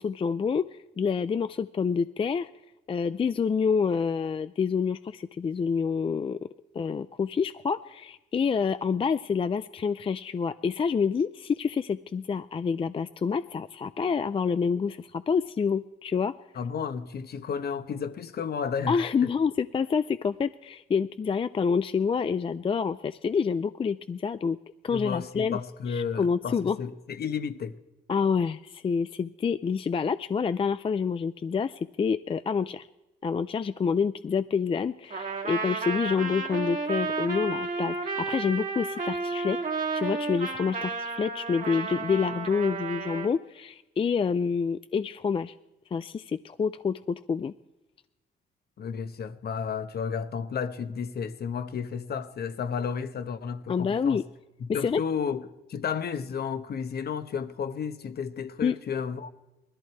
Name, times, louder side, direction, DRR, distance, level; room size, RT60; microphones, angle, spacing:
voice 1, 0.0-2.5 2.9-6.4 6.7-16.3 18.9-24.6 24.8-25.6 25.9-26.8 28.1-32.9 33.2-39.6 39.9-45.5 45.9-47.5 53.7-54.2 54.7-55.0 58.6-58.8, left 6 dB, 25° left, 0.4 m, -27 dB
voice 2, 16.5-19.3 24.9-27.8 48.8-54.2 54.6-59.3, left 6 dB, 55° left, 1.1 m, -32 dB
Trumpet, 35.1-43.3, right 4 dB, 40° right, 2.0 m, -32 dB
19.5 x 14.0 x 4.6 m
cardioid pair, 90°, 20 cm